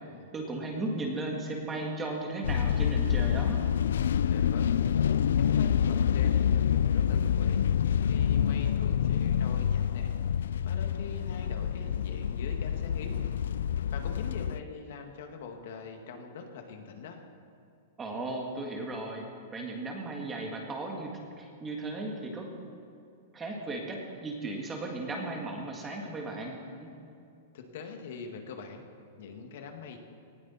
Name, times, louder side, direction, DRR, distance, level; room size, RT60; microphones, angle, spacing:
voice 1, 0.3-3.6 18.0-22.5 23.3-26.9, right 2 dB, 10° right, 1 dB, 1.7 m, -36 dB
sound 1, 2.4-14.6, left 9 dB, 80° left, 0.4 m, -27 dB
voice 2, 4.2-4.7 5.2-7.6 7.9-10.1 10.4-13.2 13.6-17.2 27.5-28.9 29.2-30.0, left 5 dB, 55° left, 4 dB, 2.1 m, -43 dB
19.0 x 17.5 x 4.4 m, 2.5 s
supercardioid pair, 180°, 0 cm